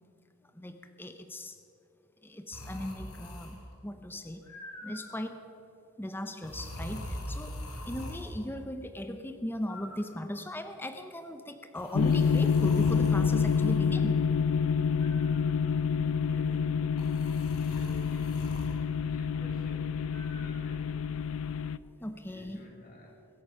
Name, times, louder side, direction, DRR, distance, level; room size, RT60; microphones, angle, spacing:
voice 1, 0.5-1.5 2.2-4.5 4.8-5.4 6.0-7.6 7.9-14.2 22.0-22.6, left 1 dB, 10° left, 7 dB, 0.6 m, -38 dB
sound 1, 2.5-3.7 4.4-5.3 6.4-8.4 9.7-10.6 11.8-13.8 15.0-15.7 17.0-18.8 20.1-20.6, left 1 dB, 85° left, 2.4 m, -42 dB
sound 2, 11.9-21.8, left 6 dB, 65° left, 0.4 m, -28 dB
voice 2, 16.2-17.0 17.6-18.7 19.0-21.0 22.3-23.2, left 1 dB, 40° left, -1 dB, 3.1 m, -51 dB
22.5 x 8.6 x 5.7 m, 2.7 s
head